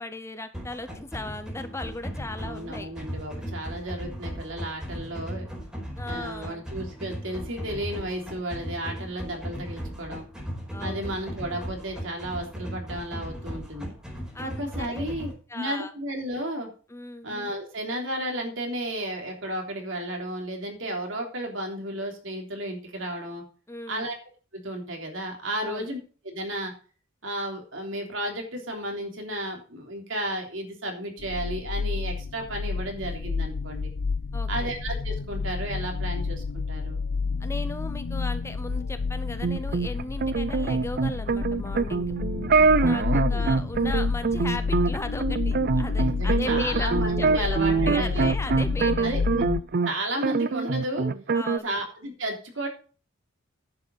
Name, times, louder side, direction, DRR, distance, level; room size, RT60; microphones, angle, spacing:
voice 1, 0.0-2.9 6.0-6.6 10.7-11.1 14.3-15.1 15.5-15.9 16.9-17.3 23.7-24.1 25.6-25.9 34.3-34.7 37.4-42.1 42.8-49.2 51.3-51.8, left 2 dB, 15° left, 10 dB, 0.7 m, -37 dB
sound 1, 0.5-15.3, equal, 5° right, 4.9 m, -37 dB
voice 2, 2.4-5.5 6.1-10.2 10.8-13.9 14.4-15.3 15.5-16.7 17.2-23.4 23.9-24.2 24.5-26.0 26.2-26.7 27.2-33.9 34.5-37.0 42.9-43.5 46.0-48.3 49.0-49.4 49.8-51.1 51.6-52.7, right 1 dB, 65° right, 2 dB, 3.5 m, -33 dB
sound 2, 31.2-49.6, left 4 dB, 85° left, 0.6 m, -30 dB
sound 3, 39.4-49.9 50.2-51.6, right 4 dB, 45° right, 0.5 m, -24 dB
10.5 x 7.7 x 5.4 m, 0.39 s
head